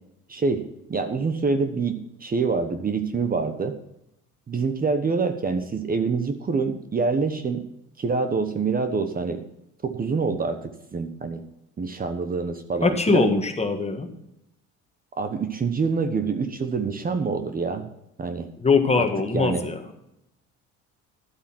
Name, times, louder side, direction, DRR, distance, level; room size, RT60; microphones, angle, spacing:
voice 1, 0.3-0.6 0.9-3.7 4.5-7.6 8.0-9.4 9.8-11.4 11.8-13.3 15.2-17.9 18.2-18.5 19.0-19.1 19.3-19.6, right 4 dB, 30° right, 8 dB, 1.1 m, -26 dB
voice 2, 12.8-14.1 18.6-19.8, left 4 dB, 20° left, 6 dB, 1.6 m, -22 dB
12.0 x 8.1 x 5.8 m, 0.82 s
cardioid pair, 110°, 31 cm